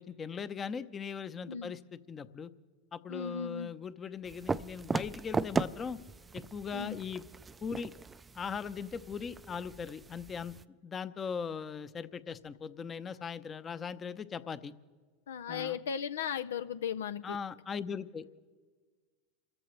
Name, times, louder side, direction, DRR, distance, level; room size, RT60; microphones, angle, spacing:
voice 1, 0.0-2.5 2.9-6.0 6.3-7.2 7.6-7.9 8.3-14.7 15.5-15.8 17.2-18.4, left 6 dB, 30° left, 14 dB, 0.8 m, -39 dB
voice 2, 3.1-3.7 6.7-7.0 15.3-17.4, left 7 dB, 80° left, 13 dB, 0.4 m, -36 dB
sound 1, 4.2-10.6, right 4 dB, 20° right, 0.4 m, -38 dB
28.5 x 14.0 x 3.2 m, 1.5 s
hypercardioid pair, 90°, 0 cm